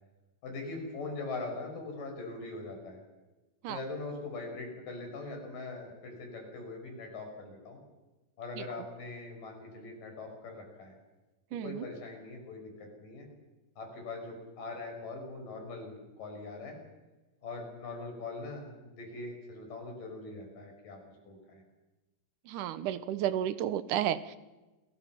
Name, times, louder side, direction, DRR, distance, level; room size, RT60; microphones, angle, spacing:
voice 1, 0.4-3.0 3.7-7.8 8.4-10.9 11.6-13.3 13.8-16.8 17.4-21.0 21.3-21.6, left 3 dB, 85° left, 2 dB, 7.2 m, -42 dB
voice 2, 11.5-11.9 22.5-24.4, right 11 dB, 80° right, 14 dB, 2.4 m, -32 dB
28.5 x 22.0 x 5.9 m, 1.1 s
omnidirectional pair, 3.8 m